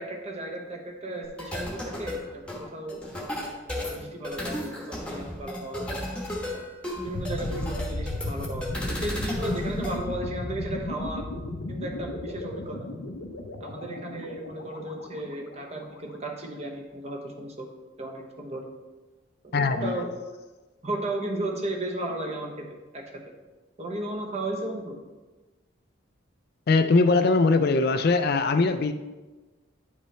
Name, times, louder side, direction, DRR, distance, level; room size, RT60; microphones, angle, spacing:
voice 1, 0.0-3.0 3.8-6.0 6.5-6.7 7.0-11.3 11.7-12.9 13.6-17.7 18.0-18.6 19.5-20.1 20.8-22.7 22.9-23.0 23.8-25.0, right 1 dB, 30° right, 1 dB, 1.0 m, -34 dB
sound 1, 1.2-10.0, left 1 dB, 5° left, 1.1 m, -34 dB
sound 2, 7.1-15.9, left 1 dB, 80° left, 0.8 m, -35 dB
voice 2, 19.5-20.0 26.7-28.9, left 3 dB, 50° left, 9 dB, 0.4 m, -21 dB
9.8 x 5.3 x 3.3 m, 1.2 s
head